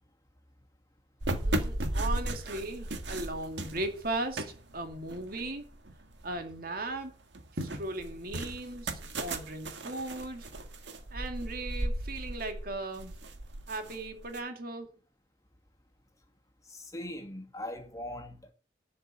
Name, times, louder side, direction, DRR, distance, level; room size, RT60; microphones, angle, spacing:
sound 1, 1.2-6.4 6.8-14.4, right 1 dB, 80° right, 1.8 m, -36 dB
voice 1, 1.4-5.7 6.2-7.1 7.6-10.5 11.1-13.2 13.7-14.9, right 2 dB, 55° right, 2.4 m, -37 dB
voice 2, 16.6-18.5, left 1 dB, 20° left, 2.4 m, -41 dB
11.5 x 5.7 x 8.4 m
head